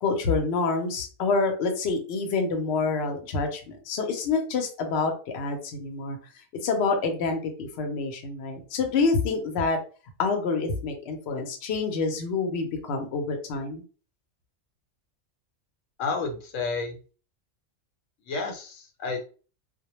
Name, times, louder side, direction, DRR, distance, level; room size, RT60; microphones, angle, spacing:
voice 1, 0.0-6.2 6.6-9.8 10.2-13.8, left 4 dB, 65° left, 4 dB, 0.8 m, -27 dB
voice 2, 16.0-17.0 18.3-19.2, left 4 dB, 90° left, 3 dB, 1.0 m, -30 dB
2.2 x 2.1 x 2.9 m, 0.37 s
omnidirectional pair, 1.3 m